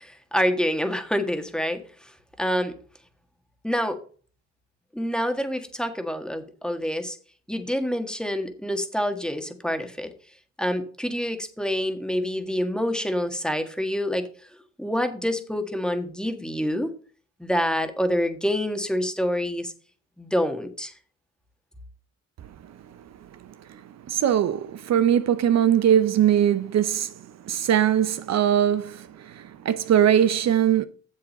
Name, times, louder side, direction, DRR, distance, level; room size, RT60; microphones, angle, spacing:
voice 1, 0.0-2.1 2.4-2.7 3.6-4.0 4.9-7.2 7.5-10.1 10.6-14.3 14.8-16.9 17.4-19.7 20.2-20.9, equal, 5° left, 1.6 m, -27 dB
voice 2, 24.1-27.1 27.4-30.9, right 9 dB, 60° right, 0.7 m, -21 dB
7.5 x 7.4 x 5.3 m
cardioid pair, 90°, 30 cm